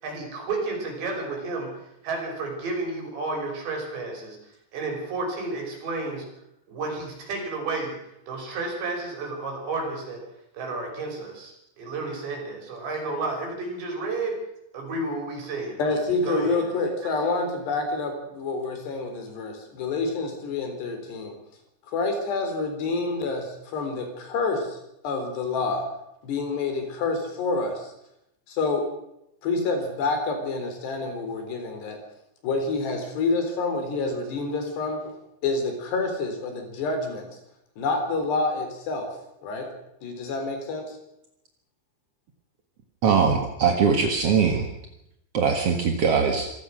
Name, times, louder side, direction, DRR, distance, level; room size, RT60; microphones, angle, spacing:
voice 1, 0.0-4.4 4.7-6.3 6.7-8.0 8.3-10.2 10.5-14.4 14.7-15.8 16.2-16.7 17.0-17.3, right 3 dB, 70° right, 1 dB, 8.2 m, -31 dB
voice 2, 15.8-21.4 21.9-24.8 25.0-25.9 26.2-27.9 28.5-28.9 29.4-32.0 32.4-35.2 35.4-37.3 37.8-39.1 39.4-39.7 40.0-41.0, left 3 dB, 65° left, 5 dB, 5.7 m, -28 dB
voice 3, 43.0-44.7 45.3-46.5, right 6 dB, 55° right, 4 dB, 1.7 m, -21 dB
26.0 x 17.0 x 6.4 m, 0.82 s
omnidirectional pair, 5.2 m